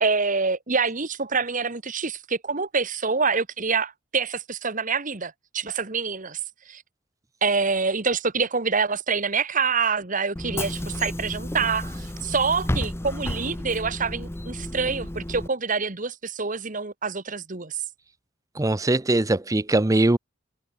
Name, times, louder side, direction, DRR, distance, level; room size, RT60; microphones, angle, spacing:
voice 1, 0.0-6.4 6.7-6.8 7.4-17.8, right 5 dB, 40° right, 1.6 m, -26 dB
Bus / Engine, 10.4-15.5, left 1 dB, 15° left, 0.9 m, -32 dB
voice 2, 18.6-20.2, right 2 dB, 15° right, 0.6 m, -21 dB
head